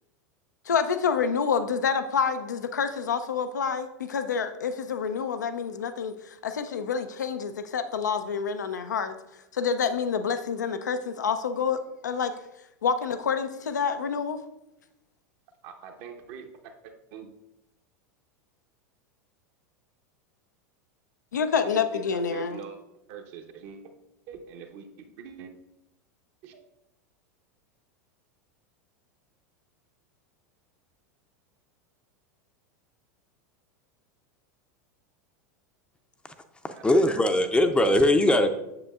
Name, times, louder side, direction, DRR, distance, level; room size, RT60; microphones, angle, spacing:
voice 1, 0.7-9.1 9.5-12.3 12.8-14.4 21.3-22.6, left 6 dB, 90° left, 9 dB, 0.5 m, -28 dB
voice 2, 15.6-17.3 21.6-22.8 23.1-23.9 24.3-25.5 26.4-26.6 36.7-36.9, right 7 dB, 55° right, 5 dB, 0.9 m, -43 dB
voice 3, 36.6-38.5, left 1 dB, 10° left, 7 dB, 0.5 m, -21 dB
7.8 x 6.6 x 2.4 m, 0.89 s
hypercardioid pair, 95°, 9 cm